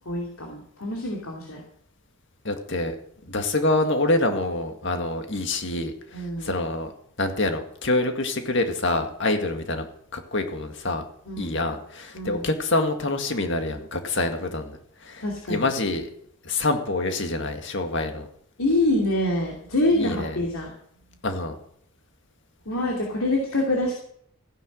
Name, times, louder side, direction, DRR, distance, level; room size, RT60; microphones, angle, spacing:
voice 1, 0.1-1.6 6.1-6.5 11.3-11.6 12.1-12.4 15.2-15.7 18.6-20.7 22.7-23.9, left 1 dB, 70° left, -1 dB, 2.8 m, -25 dB
voice 2, 2.4-3.0 3.3-5.9 6.4-6.9 7.2-9.9 10.1-11.1 11.4-14.8 15.0-16.1 16.5-18.3 19.9-20.4 21.2-21.5, left 2 dB, 55° left, 6 dB, 2.0 m, -26 dB
15.5 x 10.5 x 6.3 m, 0.66 s
head